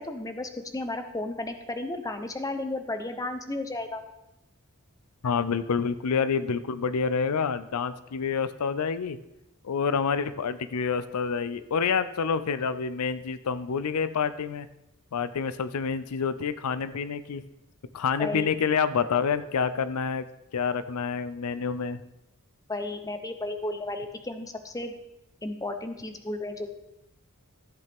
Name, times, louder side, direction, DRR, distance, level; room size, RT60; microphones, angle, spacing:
voice 1, 0.0-4.0 18.2-18.5 22.7-24.9 25.4-26.8, left 2 dB, 15° left, 7 dB, 0.7 m, -33 dB
voice 2, 5.2-9.2 9.6-14.7 15.1-17.4 17.9-20.2 20.5-22.0, left 6 dB, 90° left, 14 dB, 0.5 m, -28 dB
14.0 x 8.1 x 3.5 m, 0.91 s
head